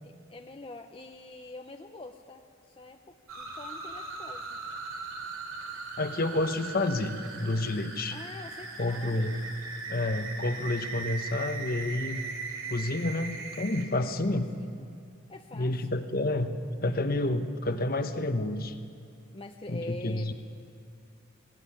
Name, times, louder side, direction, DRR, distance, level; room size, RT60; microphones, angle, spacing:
voice 1, 0.0-4.6 8.1-9.3 14.3-14.8 15.3-15.9 19.3-20.3, left 2 dB, 25° left, 4 dB, 0.7 m, -45 dB
sound 1, 3.3-13.9, right 4 dB, 70° right, 2.9 m, -39 dB
voice 2, 6.0-8.2 8.8-9.4 9.9-12.2 12.7-14.5 15.5-16.5 16.8-18.8 19.7-20.3, left 2 dB, 45° left, 8 dB, 1.1 m, -29 dB
18.5 x 17.5 x 9.9 m, 2.5 s
head